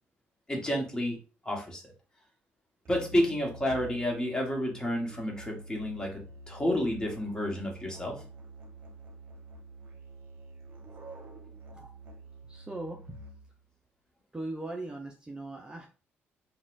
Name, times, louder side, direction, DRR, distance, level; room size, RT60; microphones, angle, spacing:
voice 1, 0.5-1.2 1.4-1.8 2.9-8.2, left 1 dB, 15° left, 0 dB, 1.3 m, -30 dB
Musical instrument, 2.8-13.6, right 1 dB, 50° right, 0.9 m, -48 dB
voice 2, 12.5-13.2 14.3-15.9, right 2 dB, 15° right, 1 dB, 0.6 m, -39 dB
4.0 x 2.3 x 2.5 m, 0.35 s
cardioid pair, 80°, 5 cm